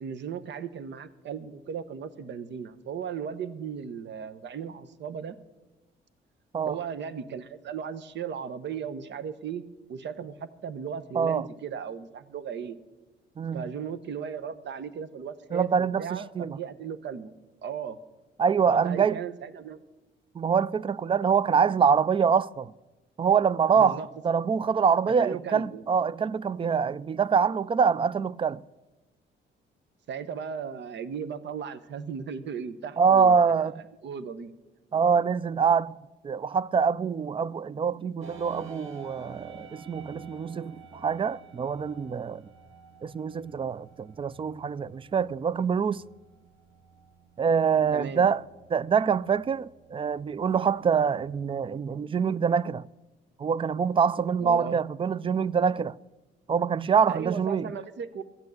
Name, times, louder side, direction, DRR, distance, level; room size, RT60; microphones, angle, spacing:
voice 1, 0.0-5.4 6.6-9.6 9.9-12.8 13.5-17.3 17.6-18.0 18.7-19.8 23.7-24.1 25.2-25.8 30.1-34.5 47.9-48.3 54.4-54.8 57.1-58.2, right 7 dB, 65° right, 1.0 m, -36 dB
voice 2, 11.2-11.5 13.4-13.6 15.5-16.6 18.4-19.2 20.4-22.7 23.2-28.6 33.0-33.8 34.9-35.9 36.2-42.4 43.0-46.0 47.4-48.4 48.7-52.8 53.4-55.9 56.5-57.7, right 6 dB, 25° right, 0.4 m, -25 dB
sound 1, 38.2-51.8, right 4 dB, 80° right, 1.5 m, -52 dB
13.5 x 8.4 x 7.8 m
cardioid pair, 90°, 20 cm